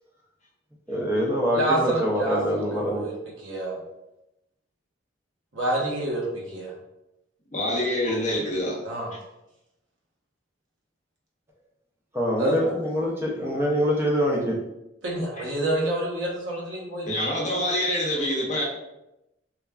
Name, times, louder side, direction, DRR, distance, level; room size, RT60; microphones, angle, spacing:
voice 1, 0.9-3.0 12.1-14.6, equal, 15° right, -2 dB, 0.4 m, -25 dB
voice 2, 1.5-3.1 3.4-3.8 5.5-6.7 8.8-9.1 12.4-12.6 15.0-17.2, right 1 dB, 80° right, -3 dB, 0.9 m, -28 dB
voice 3, 7.5-8.8 17.0-18.6, left 1 dB, 40° left, -3 dB, 0.6 m, -26 dB
3.1 x 2.3 x 2.3 m, 0.90 s
head